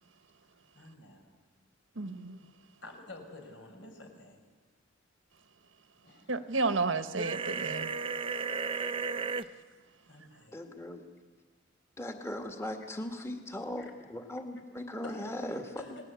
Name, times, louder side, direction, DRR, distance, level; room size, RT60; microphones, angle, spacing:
voice 1, 0.7-1.4 2.8-4.4 6.0-6.4 8.7-9.0 10.0-10.6 13.8-13.9 15.0-15.3 15.8-16.0, left 2 dB, 70° left, 4 dB, 5.7 m, -49 dB
voice 2, 2.0-2.4 6.3-7.9, right 3 dB, 80° right, 10 dB, 1.4 m, -31 dB
sound 1, 7.2-9.4, right 5 dB, 25° right, 0.7 m, -34 dB
voice 3, 10.5-11.0 12.0-15.8, left 1 dB, 15° left, 4 dB, 1.9 m, -38 dB
30.0 x 19.5 x 8.4 m, 1.4 s
head